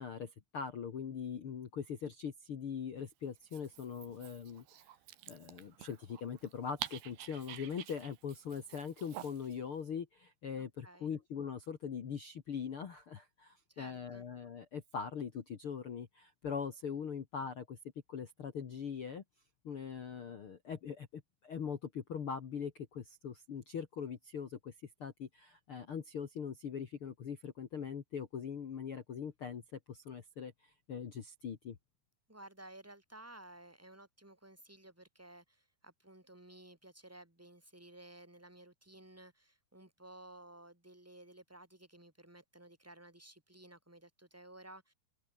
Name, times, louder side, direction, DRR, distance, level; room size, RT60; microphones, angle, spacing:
voice 1, 0.0-4.9 5.3-17.8 18.1-19.2 19.6-24.7 25.0-29.6 29.9-31.8, left 7 dB, 50° left, 1.7 m, -42 dB
Dog, 3.4-9.6, right 12 dB, 75° right, 3.5 m, -49 dB
voice 2, 10.6-11.1 13.7-14.2 32.3-44.9, right 1 dB, 5° right, 5.2 m, -55 dB
omnidirectional pair, 4.6 m